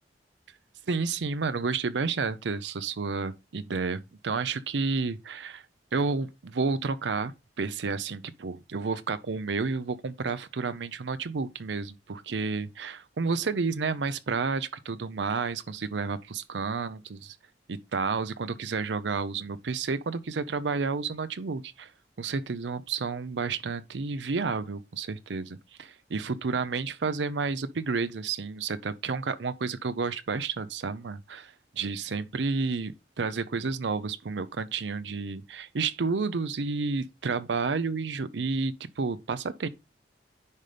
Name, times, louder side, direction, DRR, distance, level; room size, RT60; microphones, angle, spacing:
voice 1, 0.9-5.6 5.9-17.4 17.7-21.9 22.2-32.9 33.2-39.7, right 4 dB, 85° right, 0.6 m, -31 dB
9.6 x 5.2 x 3.3 m
head